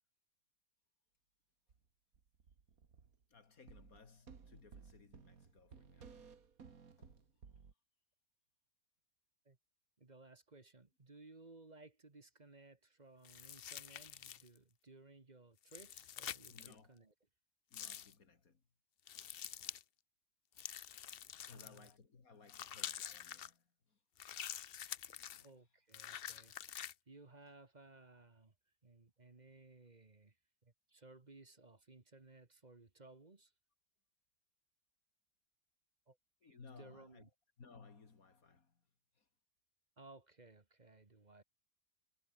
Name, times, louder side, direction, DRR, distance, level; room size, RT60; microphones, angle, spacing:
sound 1, 1.7-1.8 2.1-3.2 3.7-7.7, right 6 dB, 70° right, 2.3 m, -58 dB
voice 1, 3.3-6.4 7.0-7.6 16.5-17.0 17.7-18.6 21.4-24.0 24.9-25.6 27.5-27.6 36.4-37.3 37.6-38.8 39.2-39.3, left 4 dB, 70° left, 2.8 m, -61 dB
voice 2, 10.0-17.1 21.5-21.9 25.4-26.6 27.1-28.5 28.8-30.4 30.6-33.5 36.1-36.2 36.4-37.3 40.0-41.4, right 3 dB, 30° right, 1.7 m, -60 dB
sound 2, 13.2-14.6 15.6-16.7 17.7-18.1 19.1-19.8 20.6-21.9 22.5-23.5 24.2-25.4 25.9-26.9, left 10 dB, 55° left, 0.7 m, -47 dB
omnidirectional pair, 1.6 m